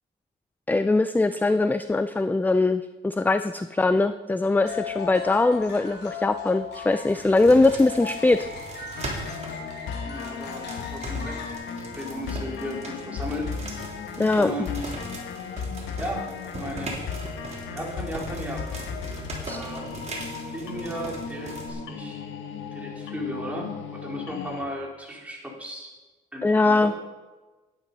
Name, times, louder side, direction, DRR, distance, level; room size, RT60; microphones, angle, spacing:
voice 1, 0.7-8.5 8.8-8.9 14.2-14.5 19.5-19.6 26.4-26.9, left 2 dB, 10° left, 11 dB, 0.4 m, -21 dB
sound 1, 4.6-11.5, left 6 dB, 60° left, 3.5 m, -38 dB
sound 2, 7.1-9.6 10.1-21.7, right 2 dB, 35° right, 3.5 m, -39 dB
sound 3, 8.9-24.6, left 5 dB, 80° left, 1.3 m, -36 dB
voice 2, 10.0-13.5 14.4-15.0 16.0-16.3 16.6-16.9 17.7-18.9 19.5-19.9 20.5-22.2 22.7-25.9 26.3-26.9, equal, 5° right, -2 dB, 3.8 m, -35 dB
11.0 x 10.5 x 5.4 m, 1.2 s
cardioid pair, 90°, 20 cm